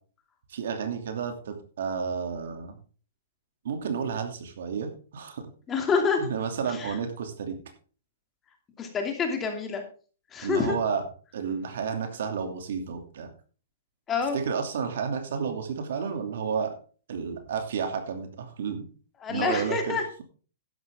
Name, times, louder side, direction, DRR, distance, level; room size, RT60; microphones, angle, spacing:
voice 1, 0.5-2.8 3.6-5.5 6.2-7.6 10.4-11.0 11.3-13.3 14.3-16.7 17.1-18.9 19.3-20.2, right 6 dB, 70° right, 6 dB, 2.6 m, -31 dB
voice 2, 5.7-6.3 6.7-7.0 8.8-9.8 10.3-10.8 14.1-14.4 19.2-20.0, left 5 dB, 20° left, 4 dB, 2.6 m, -27 dB
12.0 x 10.5 x 3.6 m, 0.38 s
hypercardioid pair, 145°, 0 cm